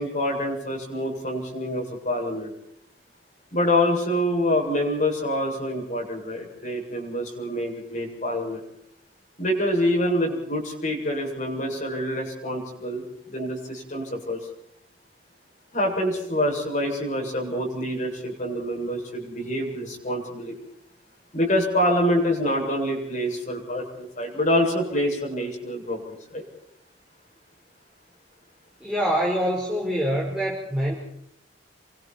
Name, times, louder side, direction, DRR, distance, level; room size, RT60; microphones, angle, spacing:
voice 1, 0.0-2.5 3.5-8.6 9.4-13.0 13.3-14.4 15.7-20.5 21.3-26.4, left 1 dB, 40° left, 0 dB, 7.8 m, -26 dB
voice 2, 28.8-30.9, equal, 5° right, -4 dB, 5.1 m, -25 dB
29.5 x 24.0 x 4.7 m, 0.73 s
head